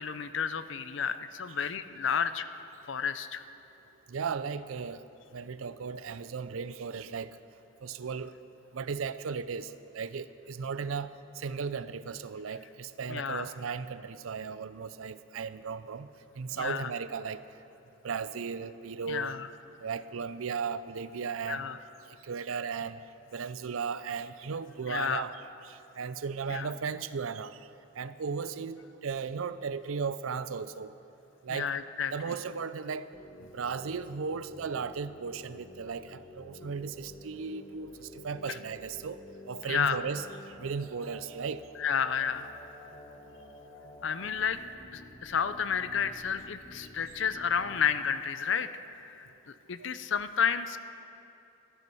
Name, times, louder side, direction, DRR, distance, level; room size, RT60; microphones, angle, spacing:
voice 1, 0.0-2.5 2.9-3.4 13.1-13.5 16.5-16.9 19.1-19.5 21.5-21.8 24.9-25.2 26.5-26.7 31.5-32.3 38.5-38.6 39.7-40.0 41.8-42.5 44.0-44.6 44.9-50.8, left 7 dB, 65° left, 12 dB, 0.6 m, -31 dB
voice 2, 4.1-5.0 5.3-7.3 7.8-8.3 8.7-9.7 9.9-11.1 11.4-16.1 16.4-17.4 18.0-19.4 19.8-21.6 22.3-23.0 23.3-25.3 26.0-27.6 28.0-30.9 31.4-31.7 32.1-33.1 33.5-39.2 39.5-40.2 40.6-41.6, right 5 dB, 85° right, 14 dB, 0.5 m, -36 dB
sound 1, 33.1-47.9, left 1 dB, 35° left, 1.2 m, -50 dB
13.5 x 12.5 x 5.5 m, 2.8 s
head